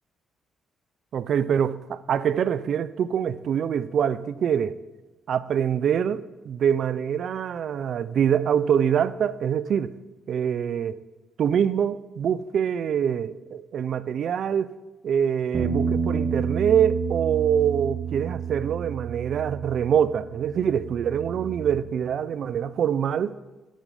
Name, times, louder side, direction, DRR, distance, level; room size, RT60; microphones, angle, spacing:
voice 1, 1.1-4.8 5.3-9.9 10.3-11.0 11.4-14.7 15.0-23.3, right 8 dB, 65° right, 0.4 m, -24 dB
sound 1, 15.5-21.8, right 6 dB, 35° right, 1.5 m, -30 dB
8.6 x 6.2 x 5.5 m
cardioid pair, 90°, 0 cm